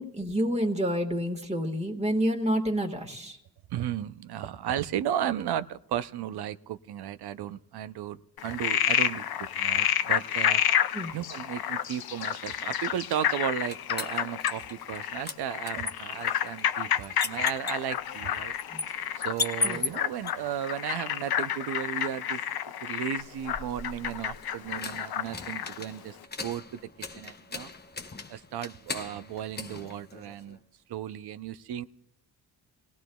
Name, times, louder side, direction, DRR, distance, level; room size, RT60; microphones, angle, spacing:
voice 1, 0.0-3.4 10.9-11.1 18.7-18.8 19.6-19.8, equal, 15° right, 4 dB, 1.6 m, -28 dB
voice 2, 3.7-9.3 9.6-10.6 11.1-18.5 19.2-22.4 22.8-26.8 27.1-27.7 28.3-30.6 30.9-31.8, right 10 dB, 80° right, 14 dB, 0.6 m, -34 dB
Frog, 8.4-25.8, left 10 dB, 70° left, 0.6 m, -30 dB
sound 1, 13.1-15.0 15.3-20.3 23.1-30.6, left 3 dB, 25° left, 0.9 m, -38 dB
30.0 x 18.0 x 2.3 m, 0.82 s
cardioid pair, 60°, 38 cm